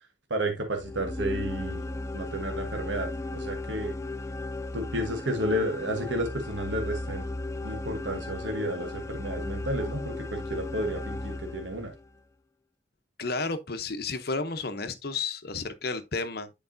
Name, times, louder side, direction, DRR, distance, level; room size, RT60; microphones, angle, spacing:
voice 1, 0.3-3.9 4.7-7.3 7.6-11.9, right 1 dB, 85° right, 1.4 m, -32 dB
sound 1, 0.8-12.1, left 2 dB, 15° left, 0.4 m, -36 dB
voice 2, 13.2-16.5, left 4 dB, 55° left, 0.9 m, -32 dB
10.0 x 4.8 x 2.7 m
head